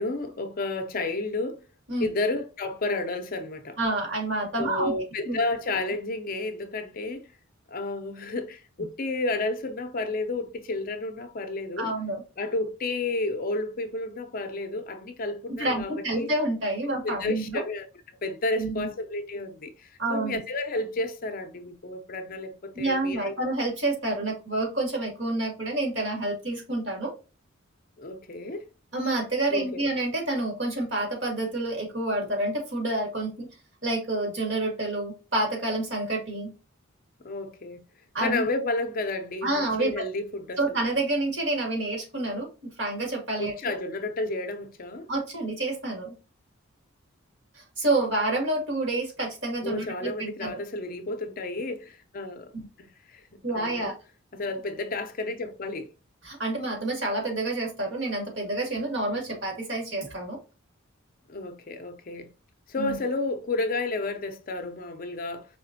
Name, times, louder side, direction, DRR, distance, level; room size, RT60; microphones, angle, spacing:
voice 1, 0.0-1.6 2.0-3.8 4.6-7.3 7.7-11.9 12.4-16.3 17.0-23.3 28.0-28.7 29.5-29.8 37.2-37.8 38.2-40.8 43.4-45.1 49.6-52.5 52.8-53.9 54.3-55.9 61.3-62.3 62.7-65.5, left 2 dB, 40° left, 0.6 m, -31 dB
voice 2, 3.8-5.0 5.3-5.4 11.8-12.2 15.5-17.6 18.6-18.9 20.0-20.4 22.8-27.1 28.9-33.5 33.8-36.5 38.1-38.5 39.4-40.0 40.6-43.5 45.1-46.1 47.5-50.6 52.5-52.7 53.4-53.9 56.2-60.4 62.8-63.0, right 2 dB, 60° right, 2.1 m, -28 dB
4.9 x 3.4 x 2.7 m
head